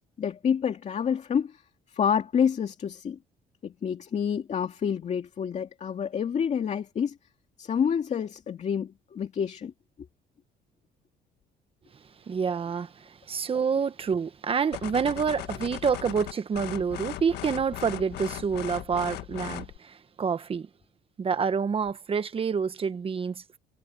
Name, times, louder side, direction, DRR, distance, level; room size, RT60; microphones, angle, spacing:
voice 1, 0.0-1.6 1.9-3.2 3.6-7.2 7.6-9.7, left 7 dB, 45° left, 2.5 m, -28 dB
voice 2, 12.3-20.7 21.2-23.6, right 6 dB, 35° right, 1.4 m, -28 dB
sound 1, 14.7-19.8, left 14 dB, 80° left, 1.4 m, -38 dB
cardioid pair, 110°, 17 cm